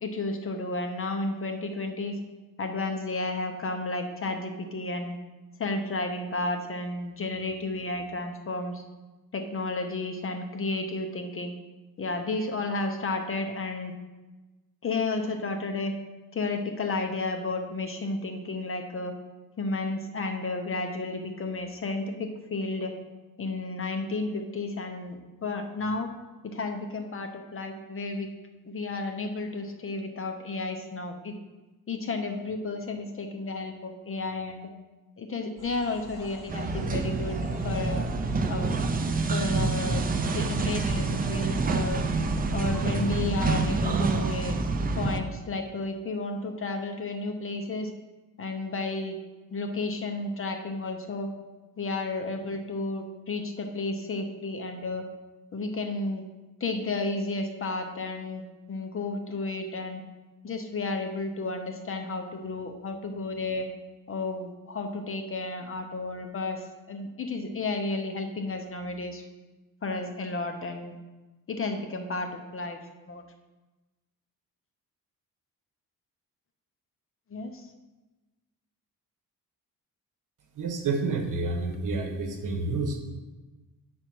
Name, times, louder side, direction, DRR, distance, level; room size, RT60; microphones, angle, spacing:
voice 1, 0.0-2.2 2.6-5.2 5.6-8.8 9.3-11.5 12.0-13.9 14.8-15.9 16.3-19.1 19.6-22.9 23.4-26.1 26.4-28.3 28.6-31.3 31.9-34.7 35.2-37.4 37.6-38.1 38.5-38.8 39.3-40.1 40.3-42.0 42.5-44.6 44.9-47.9 48.4-49.2 49.5-51.3 51.8-55.1 55.5-56.2 56.6-58.4 58.7-60.0 60.4-63.7 64.1-69.2 69.8-71.0 71.5-72.8 73.0-73.2 77.3-77.7, left 3 dB, 35° left, 5 dB, 0.7 m, -32 dB
sound 1, 35.6-42.9, equal, 10° right, 2.7 m, -41 dB
sound 2, 36.5-45.2, right 3 dB, 25° right, 0.4 m, -27 dB
voice 2, 80.6-83.0, right 3 dB, 55° right, 4 dB, 1.2 m, -29 dB
8.0 x 4.4 x 6.1 m, 1.2 s
wide cardioid pair, 155°, 37 cm